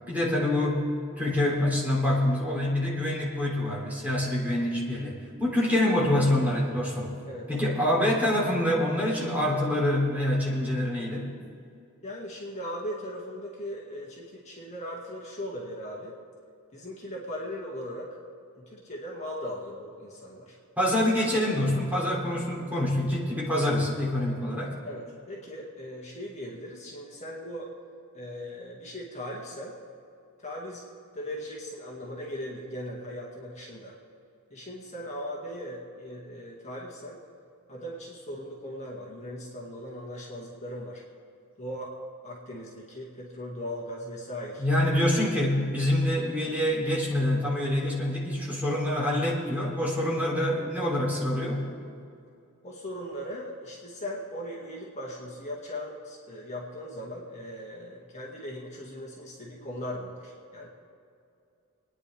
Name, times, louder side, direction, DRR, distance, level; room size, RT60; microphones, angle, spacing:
voice 1, 0.1-0.8 1.2-7.1 7.5-11.3 20.8-24.7 44.6-51.7, left 1 dB, 5° right, -5 dB, 3.2 m, -26 dB
voice 2, 12.0-16.2 16.7-18.2 18.5-20.6 24.8-27.7 28.1-29.8 30.4-30.9 31.1-34.0 34.5-37.2 37.7-41.0 41.6-42.0 42.2-44.6 52.6-60.7, equal, 30° left, -4 dB, 2.1 m, -38 dB
27.5 x 10.0 x 3.6 m, 2.5 s
head